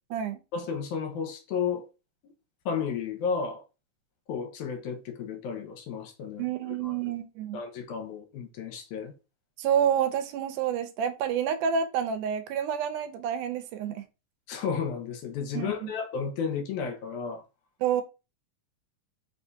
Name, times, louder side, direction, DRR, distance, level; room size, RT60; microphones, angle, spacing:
voice 1, 0.5-1.9 2.7-3.6 4.3-6.9 7.5-9.1 14.5-17.4, left 6 dB, 80° left, 2.1 m, -33 dB
voice 2, 6.4-7.6 9.6-14.0 15.5-15.9 17.8-18.0, right 8 dB, 80° right, 2.1 m, -28 dB
4.9 x 3.4 x 2.7 m
omnidirectional pair, 3.6 m